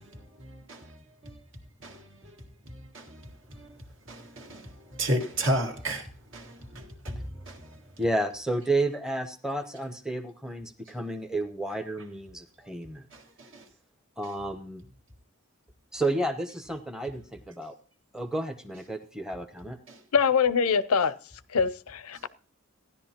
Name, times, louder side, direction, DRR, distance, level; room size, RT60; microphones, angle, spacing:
voice 1, 4.1-4.6 4.9-6.0 6.3-7.2 7.5-7.6, right 1 dB, 55° right, 1.9 m, -30 dB
voice 2, 8.0-13.1 14.2-14.8 15.9-17.8 18.1-19.8, right 1 dB, 5° right, 0.8 m, -31 dB
voice 3, 20.1-21.1 21.5-22.3, left 6 dB, 85° left, 0.6 m, -24 dB
15.5 x 10.5 x 2.9 m
head